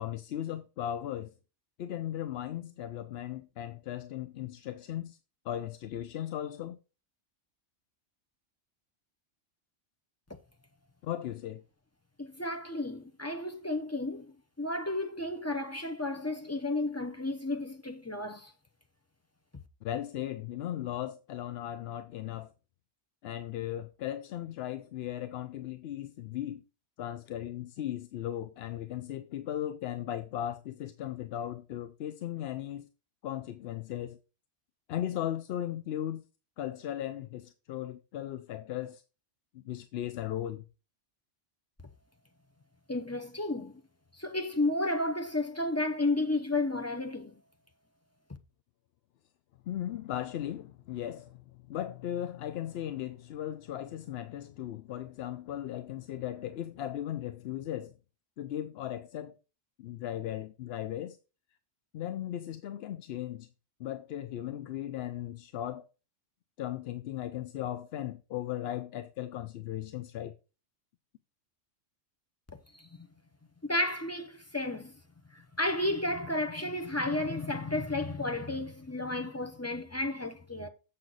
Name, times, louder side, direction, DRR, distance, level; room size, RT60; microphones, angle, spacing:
voice 1, 0.0-1.3 1.8-5.2 5.4-6.8 11.0-11.6 19.8-22.5 23.2-26.6 27.0-32.9 33.2-34.2 34.9-36.2 36.6-39.0 39.5-40.6 49.7-57.9 58.4-59.3 59.8-61.2 61.9-63.5 63.8-65.8 66.6-70.3, left 11 dB, 65° left, 0.7 m, -37 dB
voice 2, 12.2-18.5 42.9-43.8 44.1-47.4 72.7-73.1 73.6-75.0 75.3-80.7, left 2 dB, 20° left, 0.4 m, -32 dB
7.6 x 6.1 x 3.9 m
omnidirectional pair, 1.2 m